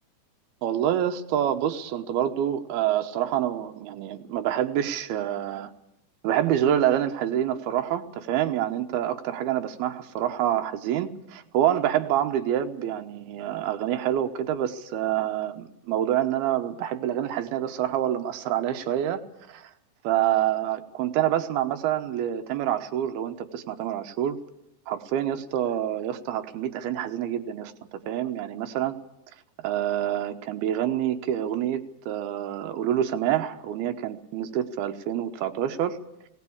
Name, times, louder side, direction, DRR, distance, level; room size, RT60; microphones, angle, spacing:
voice 1, 0.6-5.7 6.2-19.2 19.5-19.7 20.0-24.4 24.9-27.7 28.1-29.0 29.6-36.0, right 11 dB, 90° right, 7 dB, 3.0 m, -27 dB
19.0 x 18.0 x 8.6 m, 0.85 s
omnidirectional pair, 4.3 m